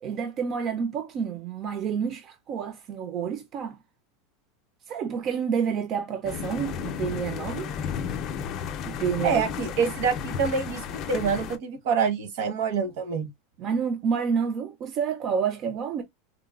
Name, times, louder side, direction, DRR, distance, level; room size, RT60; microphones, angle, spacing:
voice 1, 0.0-3.8 4.9-7.7 8.8-9.4 9.8-9.9 13.6-16.0, right 7 dB, 30° right, 0.4 m, -29 dB
sound 1, 6.2-11.6, left 7 dB, 30° left, 0.4 m, -33 dB
voice 2, 9.2-13.3, right 6 dB, 60° right, 0.9 m, -26 dB
3.8 x 2.1 x 2.3 m
supercardioid pair, 165°, 0 cm